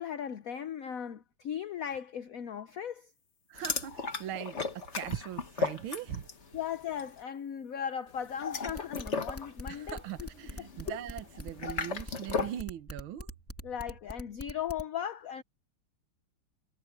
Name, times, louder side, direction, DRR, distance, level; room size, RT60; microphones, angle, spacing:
voice 1, 0.0-3.1 6.5-10.0 13.6-15.4, left 9 dB, 65° left, 0.8 m, -37 dB
voice 2, 3.5-6.3 9.7-13.3, right 11 dB, 70° right, 1.8 m, -40 dB
sound 1, 3.6-6.5 6.8-7.1 8.2-12.6, left 4 dB, 35° left, 1.6 m, -36 dB
sound 2, 3.7-10.2, right 1 dB, 50° right, 4.2 m, -65 dB
sound 3, 8.6-14.8, equal, 5° left, 2.4 m, -42 dB
omnidirectional pair, 2.4 m